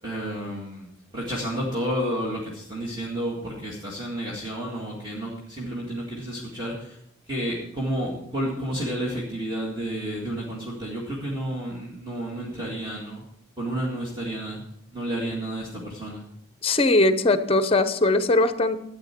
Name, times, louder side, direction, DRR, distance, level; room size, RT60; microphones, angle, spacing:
voice 1, 0.0-0.9 1.1-7.0 7.3-13.2 13.6-14.6 14.9-16.2, right 1 dB, 20° right, -4 dB, 2.0 m, -31 dB
voice 2, 16.6-18.8, left 2 dB, 30° left, 11 dB, 0.7 m, -20 dB
13.5 x 9.0 x 4.4 m, 0.74 s
head